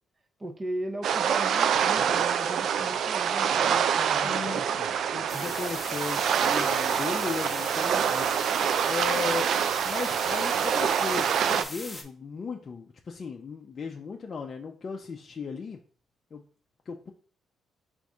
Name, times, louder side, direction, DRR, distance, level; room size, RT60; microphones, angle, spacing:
voice 1, 0.4-4.6 5.3-5.5, right 1 dB, 25° right, 6 dB, 0.7 m, -37 dB
sound 1, 1.0-11.6, right 8 dB, 70° right, 0.3 m, -26 dB
voice 2, 4.2-8.3 8.8-9.5 9.8-15.8 16.3-16.4 16.9-17.1, left 5 dB, 45° left, 2 dB, 0.5 m, -36 dB
sound 2, 5.3-12.0, left 1 dB, 5° left, 0.8 m, -40 dB
4.0 x 2.6 x 4.7 m, 0.42 s
cardioid pair, 90°, 0 cm